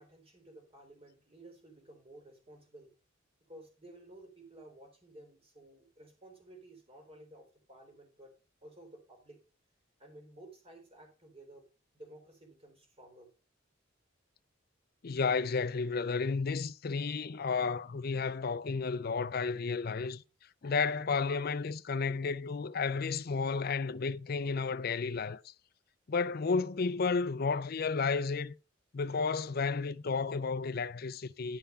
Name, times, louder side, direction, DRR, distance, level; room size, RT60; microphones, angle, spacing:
voice 1, 0.0-2.9 3.5-9.4 10.0-11.7 11.9-13.3, right 1 dB, 30° right, 3.5 m, -54 dB
voice 2, 15.0-20.2 20.6-25.5 26.1-28.5 28.9-31.6, left 4 dB, 50° left, 0.5 m, -32 dB
11.0 x 5.6 x 5.6 m
head